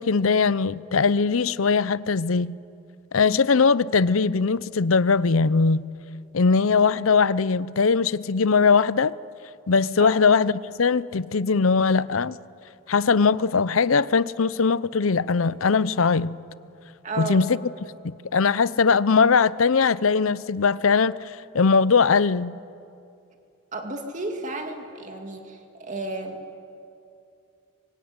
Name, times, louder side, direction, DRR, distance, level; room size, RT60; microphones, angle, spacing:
voice 1, 0.0-2.5 3.1-5.8 6.3-9.1 9.7-12.4 12.9-16.4 17.2-17.6 18.0-22.6, left 5 dB, 80° left, 0.7 m, -20 dB
voice 2, 17.0-17.5 23.7-26.6, right 2 dB, 35° right, 2.4 m, -33 dB
26.5 x 23.5 x 9.6 m
head